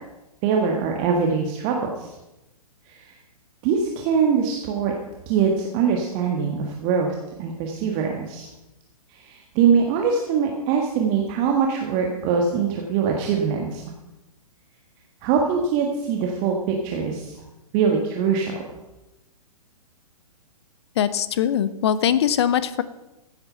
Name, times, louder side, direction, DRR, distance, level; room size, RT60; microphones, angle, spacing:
voice 1, 0.4-2.1 2.9-3.0 3.6-4.9 5.3-8.5 9.1-13.8 15.2-17.4 17.7-18.5, right 6 dB, 30° right, 1 dB, 1.5 m, -23 dB
voice 2, 21.0-22.8, left 9 dB, 45° left, 15 dB, 0.8 m, -21 dB
15.5 x 8.8 x 5.7 m, 0.99 s
figure-of-eight pair, 120°, 20 cm